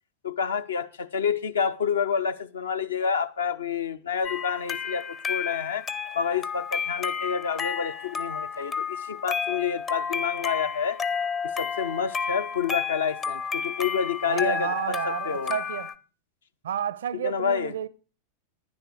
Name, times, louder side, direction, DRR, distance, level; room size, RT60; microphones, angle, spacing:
voice 1, 0.2-5.8 6.1-11.0 11.4-15.6 17.2-17.7, left 7 dB, 65° left, 0.6 m, -28 dB
sound 1, 4.2-15.9, left 6 dB, 25° left, 0.6 m, -31 dB
voice 2, 14.2-15.9 16.6-17.9, right 9 dB, 60° right, 0.5 m, -31 dB
11.5 x 9.9 x 4.7 m
figure-of-eight pair, 90°, 0 cm